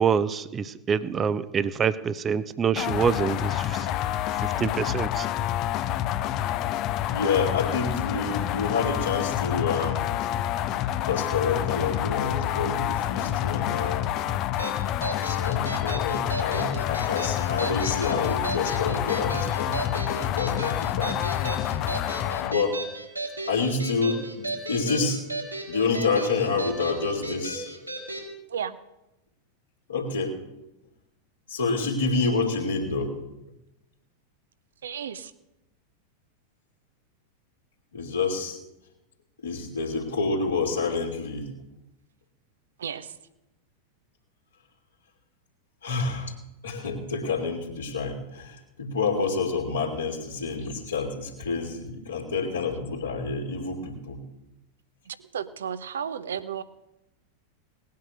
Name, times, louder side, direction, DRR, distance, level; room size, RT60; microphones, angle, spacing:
voice 1, 0.0-3.9 4.4-5.3, right 6 dB, 20° right, 15 dB, 0.8 m, -26 dB
sound 1, 2.8-22.5, left 12 dB, 40° left, 0.7 m, -28 dB
voice 2, 7.1-10.1 11.0-14.0 15.2-21.1 22.4-22.8 23.5-25.2 25.7-27.7 29.9-30.3 31.5-33.1 37.9-38.6 39.4-41.5 45.8-46.3 46.6-54.2, left 4 dB, 70° left, -3 dB, 2.9 m, -28 dB
sound 2, 14.6-28.3, right 2 dB, 90° right, 4.2 m, -35 dB
voice 3, 34.8-35.3 42.8-43.1 55.1-56.6, right 8 dB, 65° right, 13 dB, 0.9 m, -33 dB
19.0 x 9.5 x 6.6 m, 0.93 s
figure-of-eight pair, 90°, 0 cm